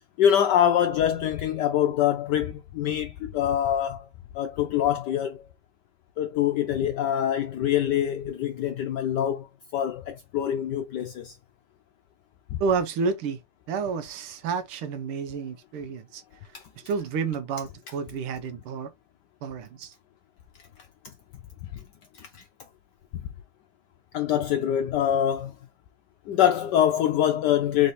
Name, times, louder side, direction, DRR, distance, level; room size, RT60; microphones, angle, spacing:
voice 1, 0.2-4.1 4.3-5.4 6.2-9.5 9.7-11.4 12.5-12.6 16.5-16.6 21.7-21.8 22.2-22.4 24.1-25.5 26.3-27.9, left 10 dB, 80° left, 0.9 m, -24 dB
voice 2, 12.6-13.4 13.7-16.2 16.8-18.9 19.4-19.9, right 5 dB, 85° right, 1.7 m, -30 dB
3.9 x 3.3 x 4.0 m
omnidirectional pair, 2.4 m